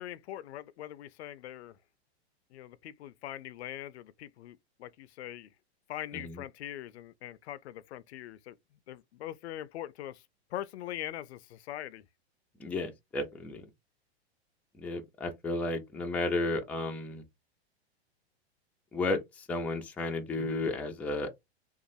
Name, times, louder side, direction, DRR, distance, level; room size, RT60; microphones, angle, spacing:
voice 1, 0.0-1.7 2.5-5.5 5.9-8.6 8.9-10.2 10.5-12.0 20.4-20.6, left 12 dB, 75° left, 0.5 m, -42 dB
voice 2, 6.1-6.4 12.6-13.7 14.8-17.2 18.9-21.3, left 2 dB, 5° left, 0.4 m, -33 dB
3.1 x 2.4 x 2.6 m
hypercardioid pair, 125°, 33 cm